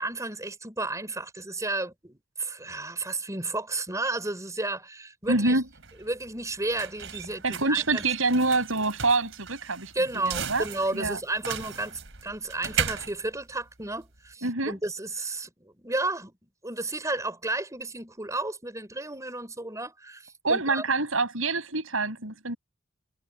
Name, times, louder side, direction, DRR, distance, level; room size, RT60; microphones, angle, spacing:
voice 1, 0.0-5.6 6.0-8.0 9.9-16.4 16.6-20.8, right 2 dB, 15° right, 5.0 m, -32 dB
sound 1, 5.2-14.3, right 7 dB, 70° right, 3.5 m, -37 dB
voice 2, 5.3-5.7 7.4-10.6 10.9-11.2 14.4-14.8 20.4-22.6, right 3 dB, 85° right, 6.5 m, -26 dB
head